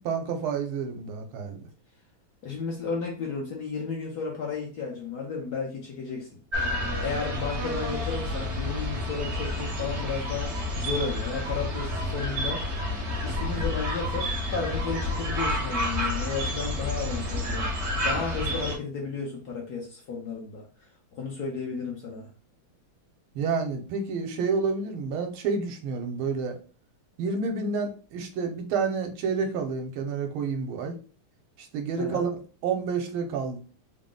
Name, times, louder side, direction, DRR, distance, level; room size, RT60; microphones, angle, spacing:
voice 1, 0.0-1.6 23.3-26.6 27.2-31.0 31.6-33.6, right 5 dB, 80° right, 1.5 m, -29 dB
voice 2, 2.4-6.4 7.0-12.6 13.2-22.3 32.0-32.3, left 5 dB, 65° left, 1.0 m, -33 dB
sound 1, 6.5-18.8, left 1 dB, 50° right, 0.8 m, -30 dB
3.7 x 2.1 x 3.7 m
omnidirectional pair, 2.4 m